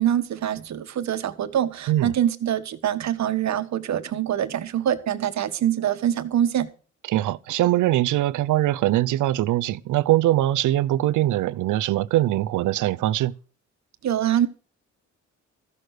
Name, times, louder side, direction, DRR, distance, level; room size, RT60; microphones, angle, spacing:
voice 1, 0.0-6.7 14.0-14.5, right 10 dB, 65° right, 1.5 m, -24 dB
voice 2, 7.1-13.3, right 14 dB, 80° right, 0.7 m, -22 dB
14.5 x 6.7 x 8.0 m
cardioid pair, 90°, 30 cm